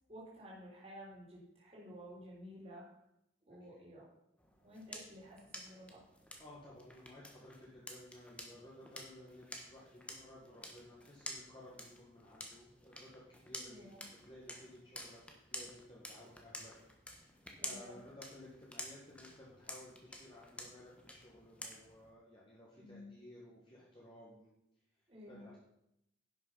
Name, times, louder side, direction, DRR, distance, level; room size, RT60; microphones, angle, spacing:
voice 1, 0.1-2.8 3.5-4.1 4.6-6.0 13.6-14.0 17.6-18.0 22.8-23.1 25.1-25.5, equal, 35° right, -6 dB, 3.3 m, -52 dB
sound 1, 4.4-22.1, left 1 dB, 5° left, 1.3 m, -51 dB
voice 2, 6.4-15.2 15.5-16.7 17.1-24.5 25.3-25.6, left 1 dB, 25° left, -5 dB, 1.8 m, -56 dB
11.0 x 6.3 x 5.7 m, 0.81 s
head